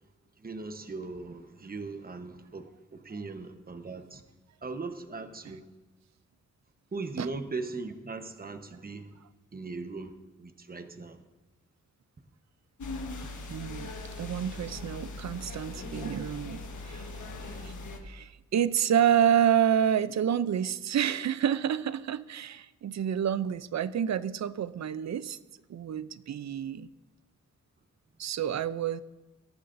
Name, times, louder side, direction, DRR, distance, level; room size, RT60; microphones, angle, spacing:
voice 1, 0.4-4.2 4.6-5.7 6.9-9.2 9.5-11.2, right 3 dB, 30° right, 8 dB, 1.0 m, -39 dB
sound 1, 12.8-18.0, left 2 dB, 80° left, 1.4 m, -40 dB
voice 2, 13.5-13.9 14.2-17.1 17.5-17.7 18.0-25.4 25.7-26.9 28.2-29.0, right 9 dB, 65° right, 16 dB, 0.5 m, -28 dB
19.0 x 13.5 x 2.6 m, 1.1 s
wide cardioid pair, 95°, 30 cm